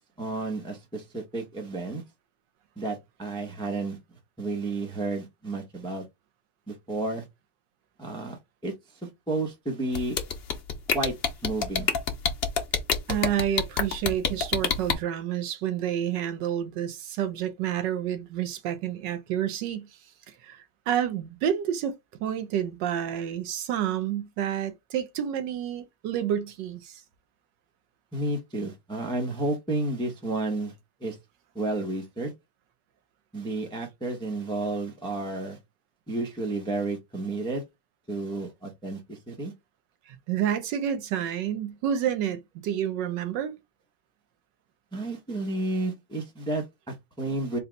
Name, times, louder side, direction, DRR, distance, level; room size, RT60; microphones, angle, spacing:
voice 1, 0.2-2.0 2.8-4.0 4.4-6.0 6.7-7.3 8.0-8.7 9.0-10.2 10.9-11.1 11.4-11.9 28.1-30.7 31.0-31.2 31.5-32.3 33.3-35.6 36.1-37.6 38.1-39.5 44.9-47.6, right 2 dB, 5° left, 0.5 m, -31 dB
sound 1, 9.9-14.9, left 7 dB, 80° left, 0.5 m, -25 dB
voice 2, 13.1-20.0 20.3-21.9 22.2-27.0 40.1-43.6, right 10 dB, 75° right, 1.3 m, -29 dB
4.1 x 2.2 x 3.9 m
omnidirectional pair, 2.0 m